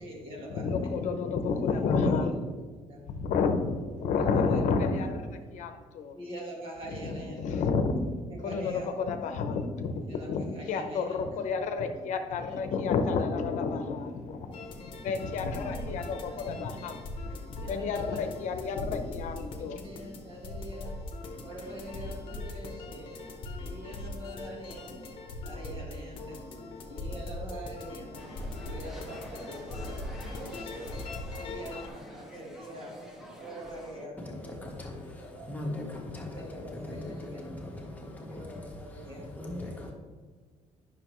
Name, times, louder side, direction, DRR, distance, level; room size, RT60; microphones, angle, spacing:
voice 1, 0.0-0.9 1.7-2.3 2.9-3.0 4.1-4.6 6.1-7.6 8.3-8.9 10.1-11.4 12.4-12.8 15.7-15.9 16.2-16.6 17.5-18.3 19.5-21.0 21.4-23.2 23.6-25.0 25.4-26.4 26.9-28.1 28.6-30.9 31.4-32.9 33.4-35.7 36.3-37.7 38.3-39.8, right 1 dB, 45° right, -2 dB, 2.0 m, -44 dB
voice 2, 0.5-2.3 3.1-6.1 6.9-8.1 8.4-17.0 17.7-19.8, left 4 dB, 75° left, 7 dB, 0.8 m, -30 dB
sound 1, 14.5-31.9, left 2 dB, 45° left, 0.9 m, -41 dB
sound 2, 28.2-34.1, left 1 dB, 5° right, 1.2 m, -47 dB
voice 3, 34.3-39.9, left 1 dB, 10° left, -1 dB, 1.4 m, -40 dB
9.8 x 6.3 x 3.1 m, 1.4 s
cardioid pair, 155°, 13 cm